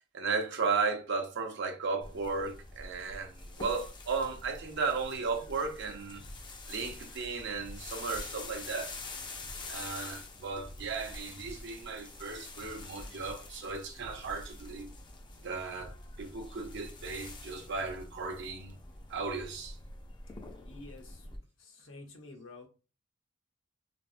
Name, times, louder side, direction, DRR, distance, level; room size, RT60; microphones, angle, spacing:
voice 1, 0.1-6.2 6.7-8.9 9.7-14.9 15.4-18.7 19.1-19.7, right 4 dB, 60° right, 0.6 m, -35 dB
sound 1, 2.0-21.4, left 2 dB, 25° left, 0.4 m, -46 dB
voice 2, 20.6-21.3 21.6-22.7, left 2 dB, 70° left, 0.7 m, -50 dB
3.3 x 2.0 x 2.4 m
head